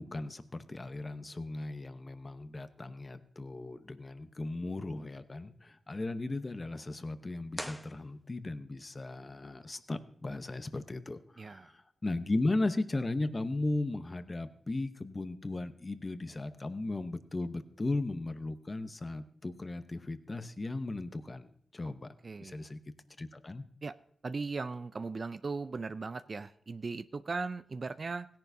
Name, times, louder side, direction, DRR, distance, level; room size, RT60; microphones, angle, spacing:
voice 1, 0.0-22.1 22.4-22.8 23.2-23.7, left 2 dB, 35° left, 11 dB, 0.9 m, -36 dB
sound 1, 7.5-8.7, equal, 5° left, 1.1 m, -44 dB
voice 2, 11.4-11.7 22.2-22.6 23.8-23.9 24.2-28.3, right 4 dB, 55° right, 12 dB, 0.4 m, -38 dB
16.5 x 10.5 x 2.7 m, 0.63 s
cardioid pair, 45°, 0 cm